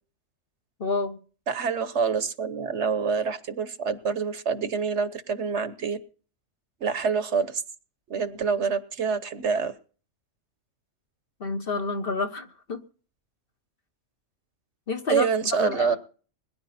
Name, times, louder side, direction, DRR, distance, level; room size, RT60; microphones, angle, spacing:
voice 1, 0.8-1.2 11.4-12.8 14.9-15.3 15.6-16.0, left 3 dB, 45° left, 1.5 m, -29 dB
voice 2, 1.5-6.0 6.8-7.6 8.1-9.7 15.1-16.0, right 5 dB, 65° right, 1.3 m, -26 dB
21.5 x 10.5 x 4.2 m
omnidirectional pair, 1.3 m